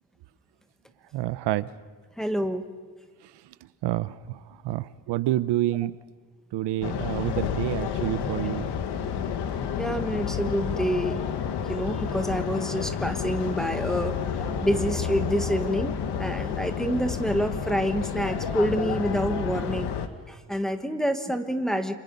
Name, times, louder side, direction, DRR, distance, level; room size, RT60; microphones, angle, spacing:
voice 1, 1.1-1.7 3.2-3.5 3.8-6.0 6.5-8.7, right 14 dB, 90° right, 15 dB, 0.9 m, -28 dB
voice 2, 2.2-2.7 9.8-11.3 11.7-19.9 20.3-21.9, equal, ahead, 5 dB, 1.4 m, -27 dB
sound 1, 6.8-20.1, left 7 dB, 80° left, 1.7 m, -30 dB
29.0 x 26.5 x 5.5 m, 1.5 s
cardioid pair, 160°, 40 cm